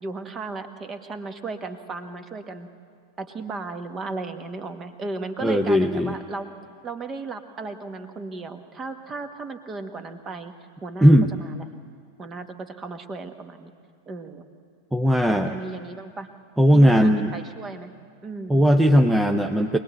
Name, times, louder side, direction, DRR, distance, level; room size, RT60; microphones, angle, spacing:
voice 1, 0.0-2.7 3.2-6.5 6.8-10.5 10.8-11.7 12.2-13.7 14.1-14.5 15.3-16.3 16.7-17.9 18.2-18.7, right 3 dB, 20° right, 9 dB, 1.4 m, -35 dB
voice 2, 5.4-6.1 11.0-11.3 14.9-15.5 16.6-17.3 18.5-19.8, equal, 5° right, 4 dB, 0.8 m, -17 dB
24.0 x 19.0 x 8.1 m, 2.2 s
figure-of-eight pair, 90°, 0 cm